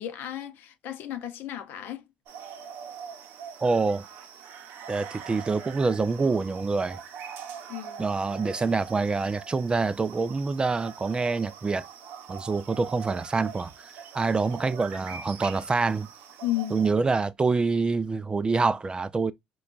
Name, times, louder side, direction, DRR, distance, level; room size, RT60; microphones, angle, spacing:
voice 1, 0.0-2.0 7.7-8.0 16.4-16.8, left 13 dB, 70° left, 0.6 m, -33 dB
sound 1, 2.3-16.9, right 7 dB, 70° right, 0.7 m, -43 dB
voice 2, 3.6-4.0 4.9-7.0 8.0-11.8 12.3-16.1 16.7-19.3, right 4 dB, 25° right, 0.3 m, -26 dB
3.8 x 2.3 x 2.3 m
supercardioid pair, 75°, 4 cm